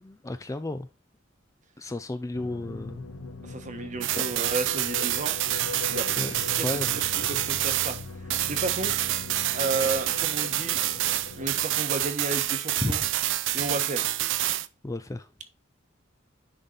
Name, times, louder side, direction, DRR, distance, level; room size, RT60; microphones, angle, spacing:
voice 1, 0.0-0.9 1.8-3.0 4.1-4.2 6.2-6.9 12.8-13.0 14.8-15.3, left 2 dB, 15° left, 0.4 m, -33 dB
sound 1, 2.3-11.6, left 4 dB, 75° left, 1.2 m, -40 dB
voice 2, 3.4-5.3 5.9-6.0 6.9-7.0 7.3-8.0 8.5-8.9 9.5-10.8 11.4-13.0 13.5-14.1, right 2 dB, 35° right, 1.1 m, -32 dB
sound 2, 4.0-8.0 8.3-14.7, right 14 dB, 65° right, 0.4 m, -27 dB
10.0 x 3.9 x 3.9 m
head